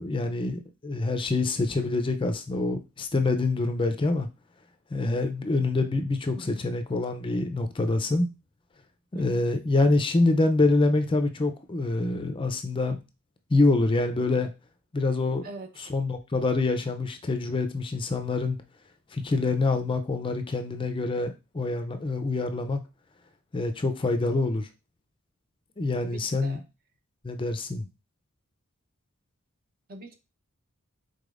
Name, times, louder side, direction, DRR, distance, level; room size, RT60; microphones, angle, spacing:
voice 1, 0.0-4.3 4.9-8.3 9.1-13.0 13.5-14.5 14.9-15.5 15.9-18.6 19.1-22.8 23.5-24.7 25.8-26.6 27.2-27.9, left 2 dB, 25° left, 7 dB, 0.5 m, -26 dB
voice 2, 9.1-9.5 15.4-15.9 26.0-26.6 29.9-30.1, right 1 dB, 45° right, 6 dB, 0.8 m, -43 dB
5.0 x 4.0 x 2.5 m, 0.26 s
head